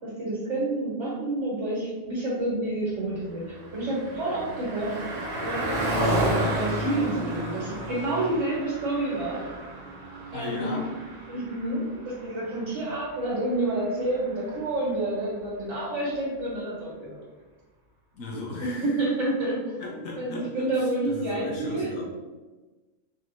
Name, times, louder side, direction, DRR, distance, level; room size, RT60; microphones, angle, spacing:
voice 1, 0.0-5.0 5.4-5.8 6.2-9.5 10.3-10.7 11.3-17.2 18.6-21.9, right 2 dB, 60° right, -7 dB, 1.7 m, -29 dB
Car passing by, 3.0-14.7, right 1 dB, 45° right, 1.2 m, -32 dB
voice 2, 10.3-10.9 18.1-19.0 19.8-22.1, left 2 dB, 85° left, -2 dB, 1.4 m, -36 dB
4.2 x 2.7 x 4.1 m, 1.2 s
omnidirectional pair, 1.4 m